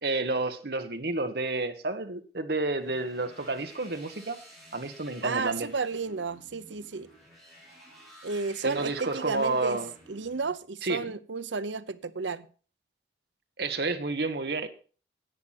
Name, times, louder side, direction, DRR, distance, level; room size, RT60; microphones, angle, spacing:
voice 1, 0.0-4.4 4.7-5.7 8.6-9.9 10.8-11.1 13.6-14.7, right 3 dB, 60° right, 1.3 m, -30 dB
sound 1, 2.8-10.5, equal, ahead, 4.4 m, -52 dB
voice 2, 5.2-7.1 8.2-9.8 10.1-12.5, right 4 dB, 85° right, 0.8 m, -32 dB
10.5 x 8.9 x 5.8 m
head